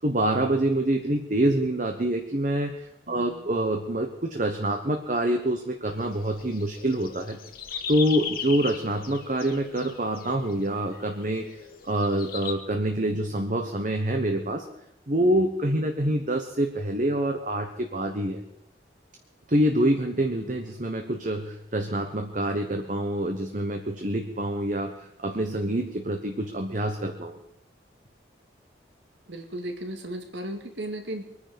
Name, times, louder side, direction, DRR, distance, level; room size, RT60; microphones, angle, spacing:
voice 1, 0.0-7.4 7.9-11.6 11.8-14.6 15.1-18.4 19.5-27.4, right 1 dB, 45° right, 4 dB, 1.1 m, -26 dB
voice 2, 3.1-3.4 29.3-31.2, right 1 dB, 80° right, 5 dB, 2.2 m, -35 dB
sound 1, 5.8-12.5, left 7 dB, 50° left, 1.5 m, -38 dB
23.5 x 9.9 x 5.2 m, 0.83 s
head